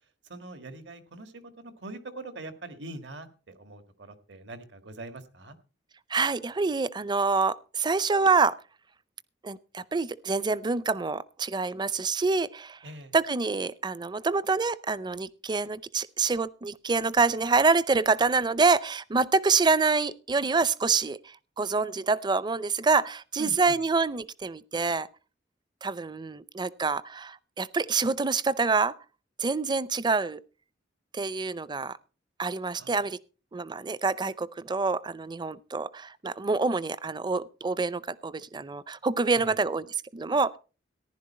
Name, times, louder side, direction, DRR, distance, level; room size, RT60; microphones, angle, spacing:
voice 1, 0.3-5.5 12.8-13.1 23.4-23.8 32.8-32.9 39.3-39.6, right 2 dB, 75° right, 1.7 m, -43 dB
voice 2, 6.1-8.6 9.4-12.8 13.1-25.1 25.8-28.9 29.4-30.4 31.1-32.0 32.4-33.2 33.5-40.6, right 4 dB, 25° right, 0.5 m, -26 dB
15.0 x 11.0 x 4.2 m
head